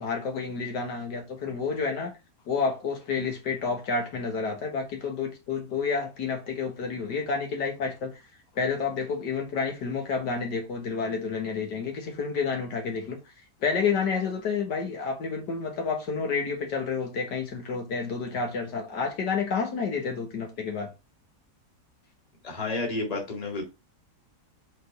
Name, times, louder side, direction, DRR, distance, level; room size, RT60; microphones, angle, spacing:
voice 1, 0.0-2.1 2.5-8.1 8.6-13.2 13.6-20.9, left 5 dB, 75° left, 1.9 m, -29 dB
voice 2, 22.4-23.6, left 2 dB, 20° left, 1.9 m, -30 dB
5.1 x 4.2 x 5.2 m
omnidirectional pair, 1.9 m